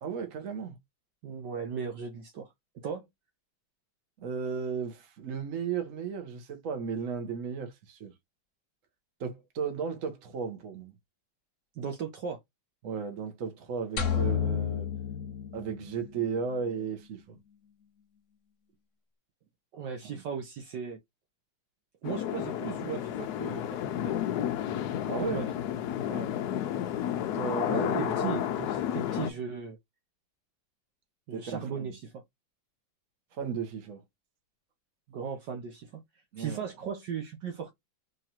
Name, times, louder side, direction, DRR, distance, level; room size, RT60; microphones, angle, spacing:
voice 1, 0.0-0.8 4.2-8.1 9.2-10.9 12.8-14.9 15.5-17.4 20.0-20.2 25.1-25.4 27.3-28.5 31.3-31.9 33.3-34.0 36.3-36.7, right 6 dB, 50° right, 1.2 m, -35 dB
voice 2, 1.2-2.5 2.7-3.1 11.8-12.4 19.7-21.0 22.0-24.1 25.1-25.5 26.1-26.3 27.7-29.8 31.3-32.2 35.1-36.0 36.4-37.7, right 6 dB, 65° right, 1.3 m, -37 dB
sound 1, 14.0-16.2, left 8 dB, 50° left, 1.1 m, -30 dB
sound 2, 22.0-29.3, left 11 dB, 75° left, 0.9 m, -31 dB
3.8 x 3.1 x 2.8 m
omnidirectional pair, 2.2 m